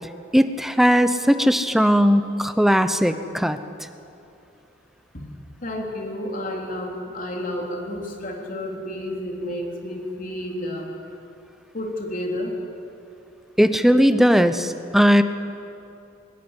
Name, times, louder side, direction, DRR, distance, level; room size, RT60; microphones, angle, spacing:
voice 1, 0.3-3.6 13.6-15.2, equal, ahead, 10 dB, 0.8 m, -18 dB
voice 2, 5.6-10.9 11.7-12.6, left 1 dB, 45° left, 1 dB, 3.5 m, -31 dB
20.5 x 19.0 x 9.8 m, 2.7 s
head